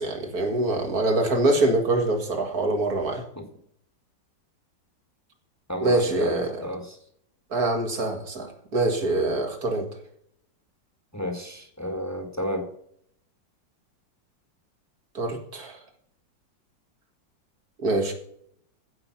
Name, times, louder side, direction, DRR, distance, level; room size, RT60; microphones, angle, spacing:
voice 1, 0.0-3.2 5.8-6.6 7.5-9.9 15.1-15.8 17.8-18.1, right 2 dB, 55° right, 4 dB, 2.4 m, -24 dB
voice 2, 5.7-7.0 11.1-12.7, equal, 10° left, 3 dB, 1.4 m, -32 dB
15.5 x 5.4 x 5.8 m, 0.68 s
omnidirectional pair, 2.0 m